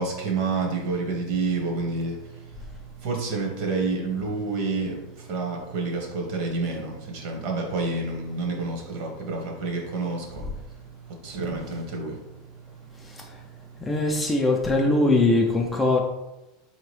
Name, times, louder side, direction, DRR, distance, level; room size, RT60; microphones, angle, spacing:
voice 1, 0.0-12.2 13.0-13.1, right 3 dB, 50° right, 2 dB, 0.9 m, -29 dB
voice 2, 12.9-13.5 13.8-16.0, left 2 dB, 10° left, 1 dB, 0.3 m, -22 dB
4.5 x 2.8 x 3.1 m, 0.95 s
supercardioid pair, 160°, 0 cm